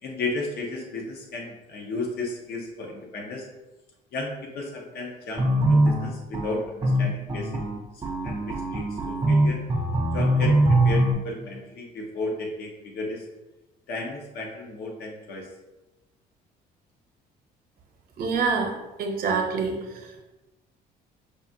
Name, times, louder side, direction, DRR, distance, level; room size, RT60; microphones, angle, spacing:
voice 1, 0.0-3.5 4.1-7.5 7.9-9.6 10.1-13.2 13.9-15.5, left 2 dB, 70° left, 0 dB, 0.9 m, -34 dB
sound 1, 5.4-11.1, right 1 dB, 25° right, 0.5 m, -22 dB
voice 2, 18.2-18.7 19.0-19.8, right 4 dB, 60° right, 2 dB, 0.8 m, -25 dB
5.0 x 2.4 x 2.6 m, 1.0 s
cardioid pair, 110°, 17 cm